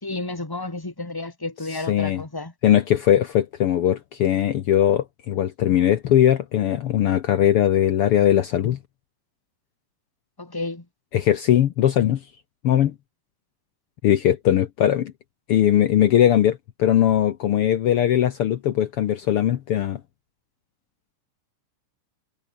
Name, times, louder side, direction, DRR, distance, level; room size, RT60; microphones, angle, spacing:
voice 1, 0.0-2.5 10.4-10.8, left 2 dB, 10° left, 1.4 m, -31 dB
voice 2, 1.7-2.2 2.6-8.8 11.1-12.2 12.6-12.9 14.0-15.1 15.5-20.0, left 11 dB, 80° left, 1.3 m, -20 dB
omnidirectional pair, 3.9 m